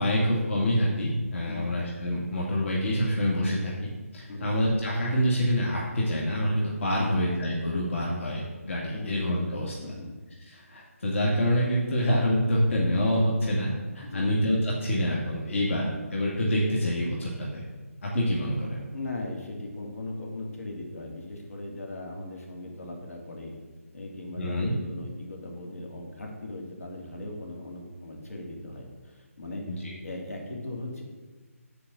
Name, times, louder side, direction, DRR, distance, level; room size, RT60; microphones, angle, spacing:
voice 1, 0.0-9.7 10.5-17.6 18.0-18.8 24.4-24.7 29.7-29.8, equal, 60° left, -4 dB, 2.2 m, -26 dB
voice 2, 1.4-1.7 4.3-4.5 6.9-7.2 8.9-9.5 9.8-10.1 14.0-14.3 18.9-23.5 23.9-29.6 30.0-31.0, left 2 dB, 75° left, 0 dB, 2.7 m, -38 dB
8.5 x 5.0 x 7.0 m, 1.3 s
figure-of-eight pair, 160°, 8 cm